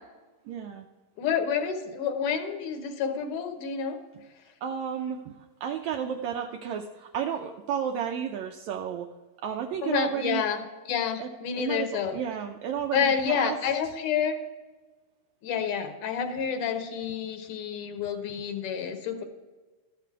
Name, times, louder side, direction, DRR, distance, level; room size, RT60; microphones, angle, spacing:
voice 1, 0.5-0.9 4.1-4.2 4.6-9.1 9.4-10.4 11.2-11.3 11.6-13.6, right 8 dB, 80° right, 4 dB, 1.6 m, -32 dB
voice 2, 1.2-4.0 9.8-10.6 10.9-12.2 12.9-14.4 15.4-19.2, left 7 dB, 75° left, 7 dB, 2.3 m, -29 dB
13.5 x 5.9 x 4.6 m, 1.3 s
omnidirectional pair, 3.8 m